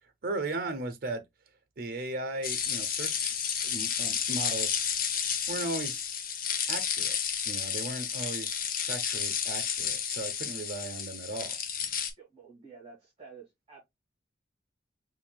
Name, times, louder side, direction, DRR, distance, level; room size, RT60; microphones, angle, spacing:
voice 1, 0.2-1.2 1.8-3.3 3.6-4.8 5.5-6.0 6.7-7.2 7.5-11.6, right 2 dB, 55° right, 0.7 m, -36 dB
sound 1, 2.4-12.1, left 8 dB, 50° left, 0.7 m, -31 dB
voice 2, 12.2-13.8, right 5 dB, 30° right, 2.2 m, -51 dB
5.6 x 2.6 x 2.2 m
head